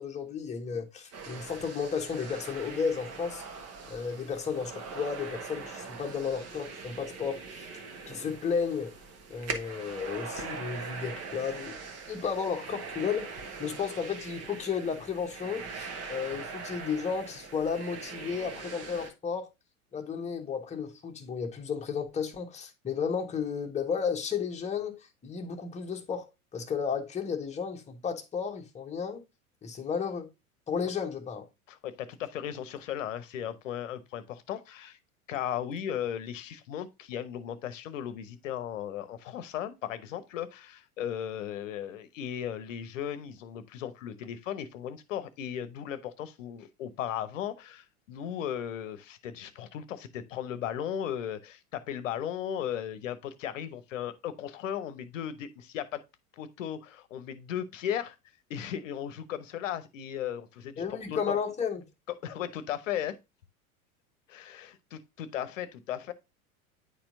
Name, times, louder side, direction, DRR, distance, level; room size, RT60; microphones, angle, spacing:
voice 1, 0.0-3.4 3.9-7.7 8.1-8.9 9.3-11.8 12.1-13.3 13.6-19.5 19.9-25.0 25.2-29.2 29.6-30.3 30.7-31.4 60.8-61.8, left 6 dB, 15° left, 1.2 m, -33 dB
sound 1, 1.1-19.1, right 4 dB, 35° right, 1.3 m, -42 dB
voice 2, 31.7-35.0 35.3-56.0 56.4-58.2 58.5-61.4 62.1-63.2 64.3-66.1, left 10 dB, 60° left, 0.9 m, -36 dB
9.6 x 4.3 x 2.6 m
figure-of-eight pair, 90°, 43 cm